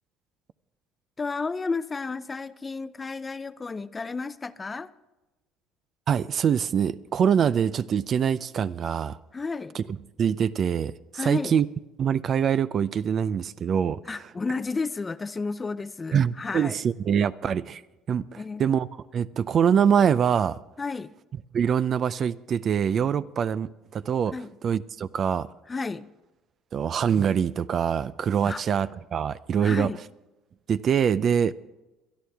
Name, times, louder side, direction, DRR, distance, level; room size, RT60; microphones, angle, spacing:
voice 1, 1.2-4.9 9.3-9.7 11.1-11.6 14.1-16.8 18.3-18.6 20.8-21.1 24.3-24.5 25.7-26.1 28.4-28.6 29.6-30.0, left 4 dB, 25° left, 0.5 m, -32 dB
voice 2, 6.1-9.2 9.7-11.7 12.0-14.3 16.1-17.8 18.1-18.9 19.1-20.6 21.5-24.3 24.6-25.5 26.7-29.9 30.7-31.5, right 8 dB, 45° right, 0.4 m, -24 dB
22.5 x 11.0 x 3.5 m
supercardioid pair, 90°, 0 cm